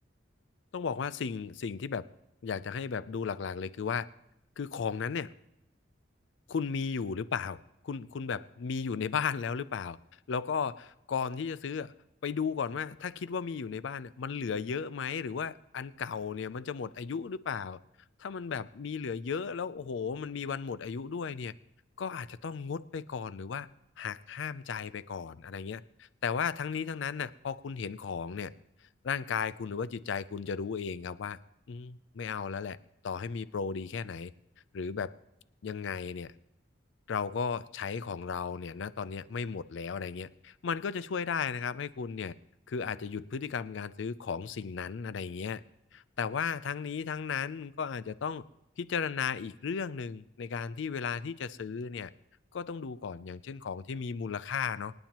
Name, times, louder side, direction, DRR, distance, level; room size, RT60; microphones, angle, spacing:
voice 1, 0.7-2.1 2.4-4.1 4.6-5.3 6.5-10.0 10.3-11.9 12.2-17.8 18.2-21.5 22.0-23.7 24.0-28.5 29.0-31.4 31.7-32.8 33.0-34.3 34.7-35.1 35.6-36.3 37.1-42.3 42.7-45.6 45.9-48.4 48.8-52.1 52.5-54.9, left 6 dB, 70° left, 17 dB, 0.4 m, -35 dB
26.5 x 9.0 x 3.0 m, 0.83 s
head